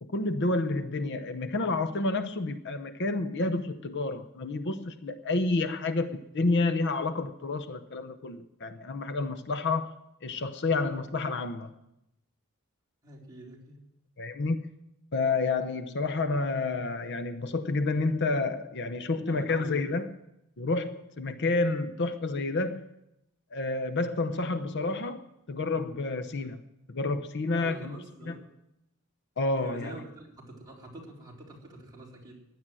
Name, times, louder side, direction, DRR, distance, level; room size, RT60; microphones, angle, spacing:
voice 1, 0.0-9.9 10.2-11.7 14.2-14.6 15.1-20.1 20.6-22.9 23.5-26.6 26.9-28.0 28.3-28.4 29.4-29.9, left 3 dB, 55° left, 0.8 m, -29 dB
voice 2, 13.0-13.8 19.3-19.8 26.4-26.6 27.5-28.5 29.6-32.3, right 2 dB, 15° right, 4.0 m, -46 dB
16.0 x 10.5 x 7.6 m
head